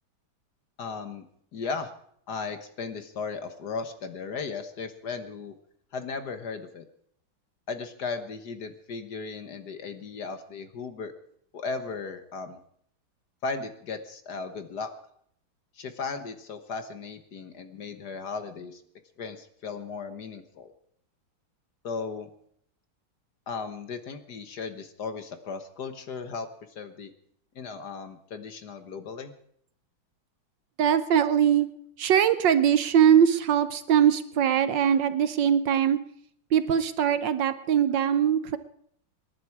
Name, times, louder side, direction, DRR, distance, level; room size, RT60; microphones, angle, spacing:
voice 1, 0.8-1.2 1.5-1.9 2.3-5.5 5.9-6.8 7.7-11.1 11.5-12.6 13.4-14.9 15.8-18.8 19.2-20.7 21.8-22.3 23.5-26.5 26.7-27.1 27.5-29.3, left 4 dB, 55° left, 8 dB, 1.7 m, -36 dB
voice 2, 30.8-31.7 32.0-36.0 36.5-38.6, right 9 dB, 65° right, 11 dB, 1.3 m, -22 dB
26.0 x 11.0 x 4.8 m, 0.66 s
omnidirectional pair, 2.3 m